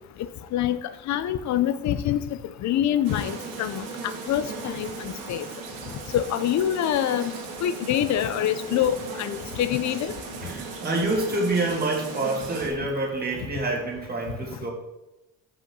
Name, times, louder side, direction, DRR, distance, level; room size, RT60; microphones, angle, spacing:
voice 1, 1.1-2.2 2.6-3.8 4.3-5.5 6.1-7.3 7.6-10.1, left 11 dB, 55° left, 13 dB, 0.6 m, -25 dB
sound 1, 3.0-12.7, right 4 dB, 80° right, 1.9 m, -37 dB
voice 2, 10.4-14.7, right 2 dB, 25° right, -2 dB, 2.2 m, -27 dB
5.7 x 5.1 x 6.0 m, 0.97 s
cardioid pair, 125°, 34 cm